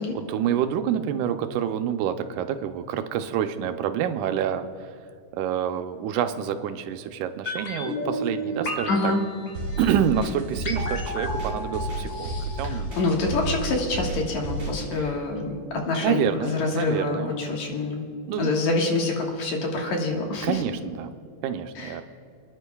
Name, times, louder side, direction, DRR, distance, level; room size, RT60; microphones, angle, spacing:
voice 1, 0.2-4.7 5.3-9.1 9.8-12.9 15.0-15.1 16.0-17.3 18.3-18.5 20.4-21.1 21.4-22.0, right 9 dB, 90° right, 8 dB, 2.2 m, -27 dB
sound 1, 7.5-13.5 13.8-13.9, left 1 dB, 55° left, 2.3 m, -33 dB
voice 2, 8.9-9.2 12.6-18.0 18.4-20.6 21.8-22.0, left 3 dB, 70° left, 0 dB, 2.8 m, -26 dB
sound 2, 9.5-14.9, right 2 dB, 35° right, 3.6 m, -31 dB
29.5 x 10.5 x 2.3 m, 2.4 s
omnidirectional pair, 3.5 m